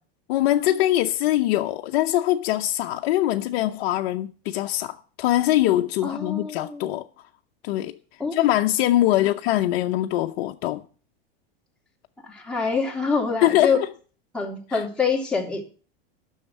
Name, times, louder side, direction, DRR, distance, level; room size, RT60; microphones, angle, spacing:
voice 1, 0.3-7.1 7.6-7.9 8.3-10.8 13.4-13.9 14.7-14.8, left 14 dB, 65° left, 0.8 m, -23 dB
voice 2, 6.0-6.9 8.2-8.4 12.2-13.8 14.3-15.7, left 5 dB, 5° left, 3.0 m, -25 dB
9.8 x 6.5 x 8.2 m
supercardioid pair, 125°, 30 cm